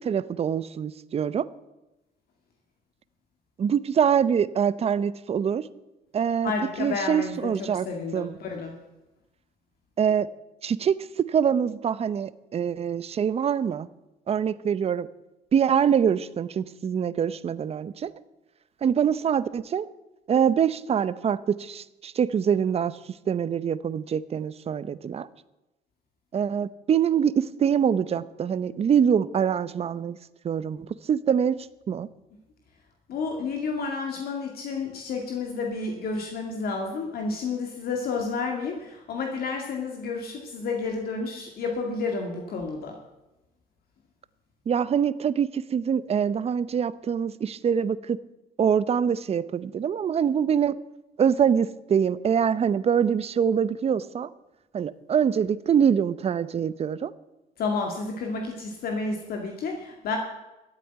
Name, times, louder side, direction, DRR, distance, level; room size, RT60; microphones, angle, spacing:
voice 1, 0.0-1.5 3.6-5.7 6.1-6.5 6.8-7.9 8.1-8.3 10.0-10.3 10.6-13.9 14.3-15.1 15.5-18.1 18.8-19.9 20.3-23.0 23.3-25.3 26.3-30.2 30.4-32.1 44.7-48.2 48.6-50.8 51.2-54.3 54.7-57.1, right 8 dB, 35° right, 16 dB, 0.7 m, -24 dB
voice 2, 6.4-8.7 33.1-42.9 57.6-60.2, left 4 dB, 65° left, 2 dB, 2.3 m, -31 dB
13.0 x 8.4 x 9.1 m, 1.0 s
cardioid pair, 110°, 17 cm